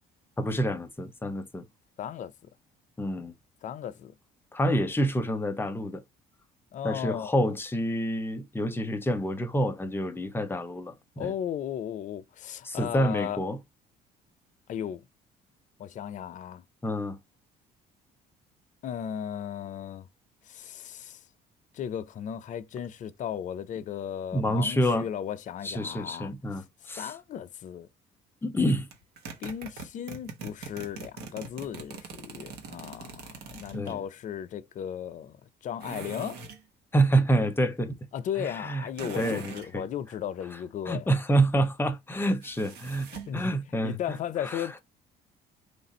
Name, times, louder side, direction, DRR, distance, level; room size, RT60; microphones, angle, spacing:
voice 1, 0.4-1.6 3.0-3.3 4.5-6.0 6.8-11.3 12.7-13.6 16.8-17.2 24.3-25.1 25.6-27.1 28.4-28.9 33.7-34.0 36.9-38.0 38.7-38.8 39.2-39.9 40.9-43.1 43.3-44.2 44.4-44.6, right 1 dB, 15° left, 0.7 m, -27 dB
voice 2, 2.0-2.5 3.6-4.1 6.7-7.3 11.2-13.4 14.7-15.0 15.8-16.6 18.8-20.1 20.4-21.2 21.7-27.9 29.4-36.4 38.1-41.1 43.1-43.5 43.8-44.8, left 9 dB, 50° left, 0.5 m, -36 dB
sound 1, 28.9-34.0 35.8-36.6 39.0-39.7 42.4-43.4, right 5 dB, 75° right, 1.0 m, -42 dB
3.2 x 2.5 x 4.1 m
cardioid pair, 110°, 17 cm